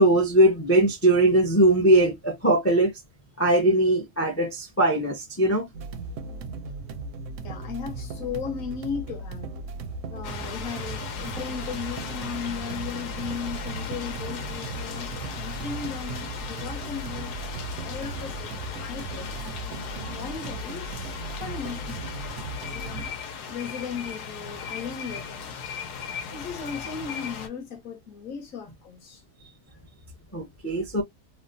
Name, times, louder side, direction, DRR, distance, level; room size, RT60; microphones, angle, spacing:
voice 1, 0.0-2.9 3.4-5.7 30.3-31.0, right 1 dB, 25° left, 0.3 m, -20 dB
sound 1, 5.7-23.1, right 3 dB, 70° right, 0.8 m, -37 dB
voice 2, 7.4-9.6 10.1-17.4 17.8-19.3 19.9-21.1 21.4-23.1 23.5-25.6 26.3-29.2, left 6 dB, 60° left, 1.2 m, -36 dB
sound 2, 10.2-27.5, left 6 dB, 85° left, 1.3 m, -37 dB
3.2 x 2.1 x 2.6 m
omnidirectional pair, 1.6 m